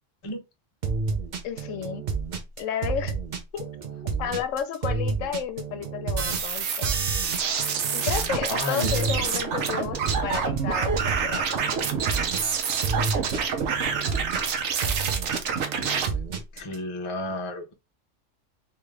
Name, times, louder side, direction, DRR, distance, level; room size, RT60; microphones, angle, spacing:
sound 1, 0.8-16.8, right 5 dB, 45° right, 0.7 m, -30 dB
voice 1, 1.4-2.0 2.6-3.1 3.5-3.6 4.2-6.9 7.9-11.9, left 8 dB, 75° left, 0.9 m, -32 dB
why you should invest in a Kaoss pad, 6.2-16.1, right 6 dB, 65° right, 1.0 m, -27 dB
voice 2, 8.5-9.0 16.5-17.7, left 1 dB, 30° left, 0.6 m, -31 dB
3.6 x 2.8 x 3.2 m
omnidirectional pair, 1.3 m